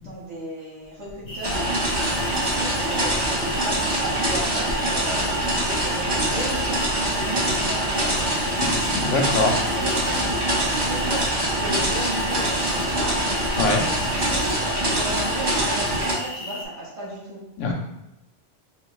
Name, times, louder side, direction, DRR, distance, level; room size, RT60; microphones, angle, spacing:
voice 1, 0.0-1.8 2.5-6.8 7.1-8.3 9.3-11.3 11.6-13.3 14.3-17.4, right 1 dB, 65° right, -7 dB, 1.7 m, -35 dB
sound 1, 1.3-16.6, left 1 dB, 45° left, 0.8 m, -35 dB
sound 2, 1.4-16.1, right 1 dB, 25° right, 0.7 m, -24 dB
voice 2, 8.9-9.5 13.6-13.8 17.6-17.7, left 3 dB, 75° left, 1 dB, 1.0 m, -23 dB
4.5 x 2.9 x 3.0 m, 0.87 s
omnidirectional pair, 1.3 m